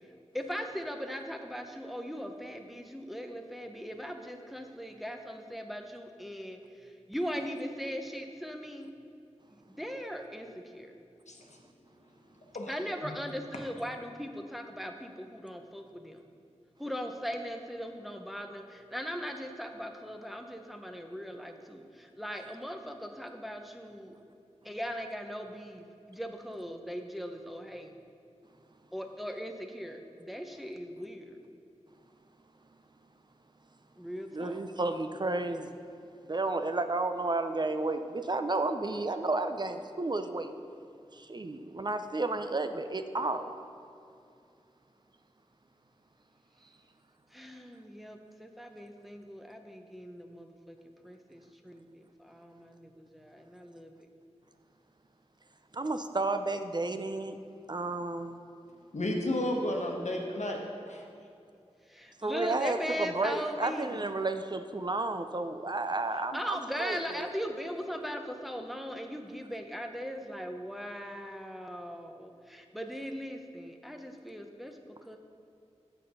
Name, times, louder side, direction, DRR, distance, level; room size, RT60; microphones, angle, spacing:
voice 1, 0.3-8.9 9.6-10.9 12.7-16.2 16.8-24.1 24.6-28.0 28.9-31.4 34.0-34.6 47.3-53.9 61.9-64.0 66.3-74.8 75.1-75.2, equal, ahead, 4 dB, 0.6 m, -39 dB
voice 2, 34.3-35.7 36.3-40.5 41.1-43.5 55.7-57.4 57.7-58.4 62.2-67.3, right 2 dB, 40° right, 8 dB, 0.5 m, -32 dB
voice 3, 58.9-60.6 60.9-61.0, left 1 dB, 85° left, 0 dB, 1.1 m, -32 dB
6.8 x 6.2 x 5.5 m, 2.5 s
wide cardioid pair, 60°, 12 cm